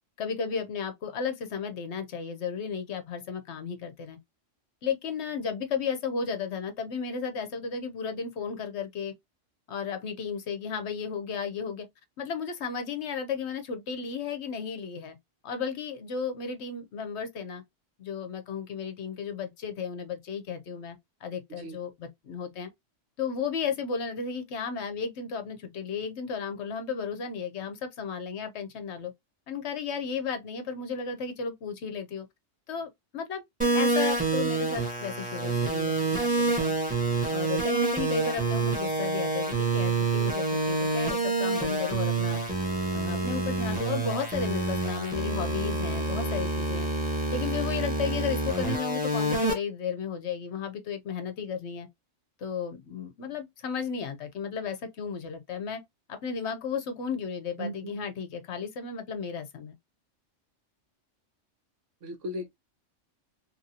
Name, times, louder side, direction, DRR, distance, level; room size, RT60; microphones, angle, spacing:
voice 1, 0.2-4.2 4.8-9.1 9.7-11.9 12.2-15.2 15.4-17.6 18.0-22.7 23.2-29.1 29.5-32.3 32.7-33.4 33.7-36.7 37.3-42.4 42.9-46.9 47.3-51.9 52.4-55.8 56.1-59.7, left 6 dB, 65° left, 0.9 m, -34 dB
sound 1, 33.6-49.5, right 3 dB, 5° right, 1.1 m, -27 dB
voice 2, 57.6-57.9 62.0-62.5, equal, 75° right, 1.3 m, -36 dB
2.9 x 2.6 x 2.7 m
omnidirectional pair, 1.3 m